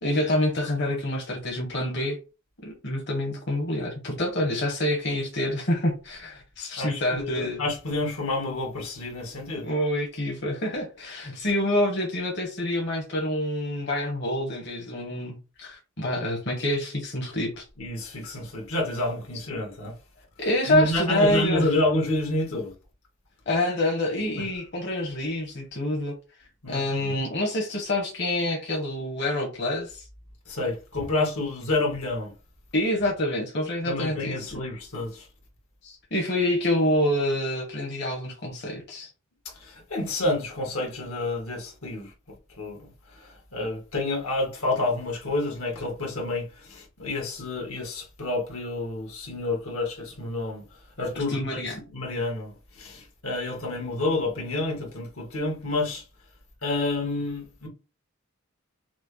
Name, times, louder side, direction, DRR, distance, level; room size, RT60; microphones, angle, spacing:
voice 1, 0.0-2.2 2.6-7.6 9.6-17.6 20.4-21.7 23.5-26.1 26.7-30.0 32.7-34.6 35.8-39.1 51.1-51.8, left 1 dB, 50° left, 1.2 m, -27 dB
voice 2, 6.7-9.7 17.8-19.9 20.7-22.7 24.4-24.5 26.6-27.2 30.5-32.3 33.8-35.3 39.5-50.6 51.0-51.6 51.9-56.0 56.6-57.7, left 2 dB, 75° left, 1.6 m, -29 dB
6.0 x 2.2 x 3.1 m
head